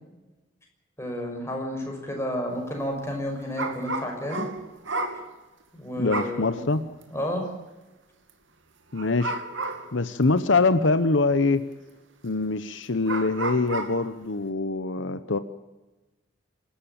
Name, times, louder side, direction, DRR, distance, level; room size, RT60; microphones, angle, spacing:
voice 1, 1.0-4.4 5.7-7.5, equal, 15° left, 1 dB, 6.0 m, -31 dB
sound 1, 3.6-5.3 6.1-6.4 7.0-7.1 8.9-9.9 10.6-10.7 12.4-12.5 13.1-14.0, right 3 dB, 75° right, 2.7 m, -32 dB
voice 2, 6.0-6.8 8.9-9.4 9.9-11.6 12.2-15.4, left 3 dB, 75° left, 12 dB, 0.9 m, -24 dB
27.5 x 13.0 x 8.8 m, 1.1 s
head